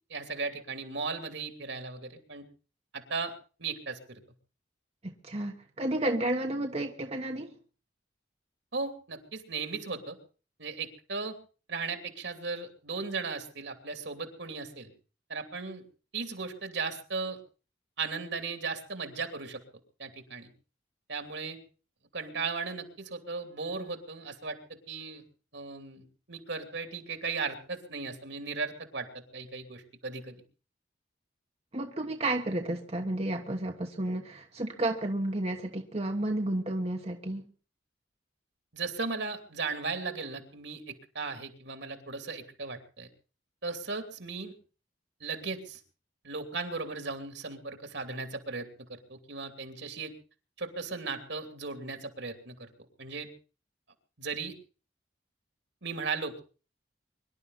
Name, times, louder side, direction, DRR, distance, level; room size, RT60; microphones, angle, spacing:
voice 1, 0.1-2.4 2.9-3.3 3.6-4.2 8.7-10.2 10.6-11.4 11.7-14.9 15.3-15.8 16.1-17.4 18.0-19.6 20.0-20.5 21.1-21.6 22.1-24.6 24.9-25.2 25.5-26.0 26.3-30.4 38.7-43.1 43.6-44.5 45.2-45.8 46.2-50.1 50.6-52.7 53.0-53.3 54.2-54.5 55.8-56.4, right 4 dB, 70° right, 6 dB, 2.8 m, -36 dB
voice 2, 5.0-7.6 31.7-37.4, right 1 dB, 35° right, 3 dB, 1.2 m, -32 dB
24.0 x 12.0 x 4.1 m, 0.37 s
head